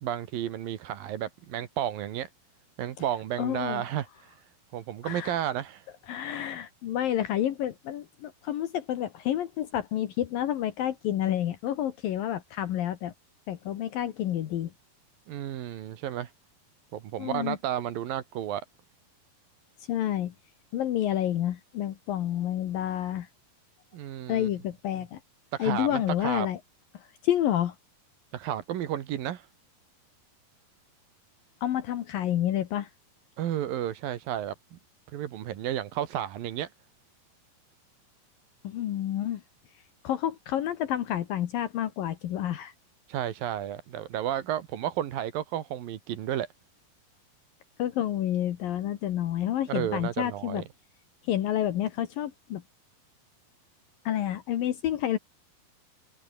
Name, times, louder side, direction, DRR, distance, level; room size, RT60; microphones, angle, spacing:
voice 1, 0.0-2.3 2.8-4.4 4.7-5.9 15.3-16.3 16.9-18.6 23.9-24.5 25.5-26.5 28.3-29.5 33.4-34.8 35.1-36.7 43.1-46.5 49.7-50.6, right 11 dB, 70° right, 3.3 m, -32 dB
voice 2, 3.4-3.8 5.0-5.4 6.1-13.1 13.5-14.7 17.2-17.6 19.9-20.3 20.7-23.3 24.3-25.2 25.6-26.6 26.9-27.7 31.6-32.9 38.6-39.4 40.0-42.7 47.8-50.6 51.3-52.6 54.0-55.2, left 11 dB, 70° left, 3.1 m, -29 dB
omnidirectional pair, 4.4 m